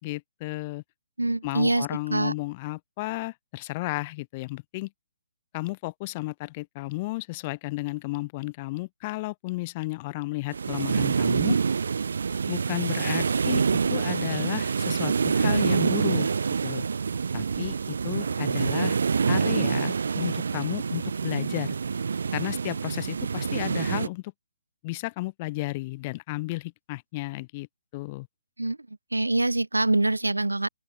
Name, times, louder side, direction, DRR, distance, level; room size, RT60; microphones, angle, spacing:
voice 1, 0.0-0.8 1.4-4.9 5.5-11.6 12.5-16.3 16.6-16.8 17.3-19.0 19.3-21.7 22.3-24.3 24.8-27.7 27.9-28.3, left 21 dB, 35° left, 6.2 m, -33 dB
voice 2, 1.2-1.9 2.1-2.3 28.6-28.8 29.1-30.7, right 2 dB, 90° right, 6.8 m, -24 dB
sound 1, 10.5-24.1, right 5 dB, 65° right, 8.0 m, -26 dB
open air
figure-of-eight pair, 135°, 0 cm